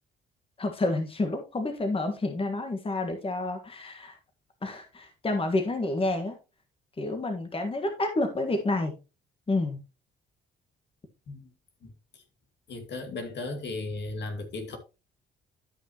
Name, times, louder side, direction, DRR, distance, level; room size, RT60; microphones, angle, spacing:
voice 1, 0.6-4.2 4.6-6.4 7.0-8.9 9.5-9.8, left 2 dB, 30° left, 1.6 m, -29 dB
voice 2, 11.8-12.2 12.7-14.8, left 2 dB, 60° left, 2.2 m, -36 dB
12.5 x 5.6 x 3.0 m
cardioid pair, 90°, 20 cm